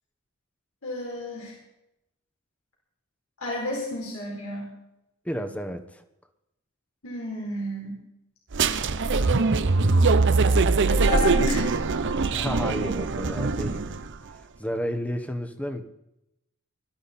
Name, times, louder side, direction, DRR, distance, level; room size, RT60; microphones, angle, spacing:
voice 1, 0.8-1.5 3.4-4.7 7.0-8.0 10.9-11.7, left 2 dB, 70° left, -2 dB, 4.3 m, -31 dB
voice 2, 5.2-6.0 12.3-13.9 14.2-15.8, equal, 5° left, 7 dB, 1.3 m, -32 dB
sound 1, 8.5-14.1, right 3 dB, 60° right, 0.8 m, -22 dB
20.5 x 12.5 x 4.3 m, 0.86 s
head